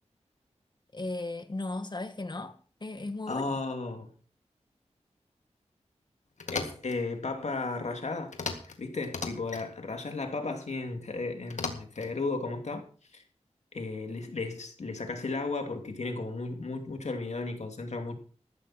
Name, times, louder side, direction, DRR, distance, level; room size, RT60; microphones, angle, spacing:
voice 1, 0.9-3.5, left 2 dB, 40° left, 1.7 m, -36 dB
voice 2, 3.3-4.1 6.5-8.3 8.8-12.8 13.1-13.2 13.7-18.1, left 3 dB, 70° left, 2.6 m, -34 dB
sound 1, 6.4-7.0 8.3-8.8 9.0-9.7 11.5-12.1, left 4 dB, 90° left, 2.0 m, -36 dB
14.5 x 14.0 x 4.3 m
wide cardioid pair, 90°, 12 cm